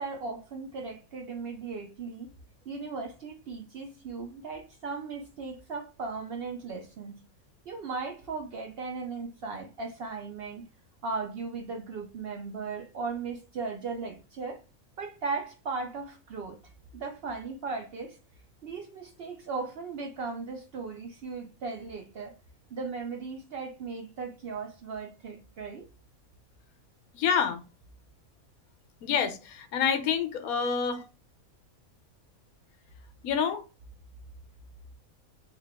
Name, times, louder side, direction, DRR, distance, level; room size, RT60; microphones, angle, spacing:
voice 1, 0.0-2.3 2.7-7.2 7.7-10.7 11.0-14.6 15.0-16.6 16.9-18.2 18.6-22.4 22.7-25.9 30.6-31.0, right 4 dB, 70° right, 0.5 m, -37 dB
voice 2, 27.1-27.6 29.0-31.0 33.2-33.6, left 7 dB, 85° left, 1.1 m, -27 dB
3.4 x 2.3 x 3.3 m
omnidirectional pair, 1.5 m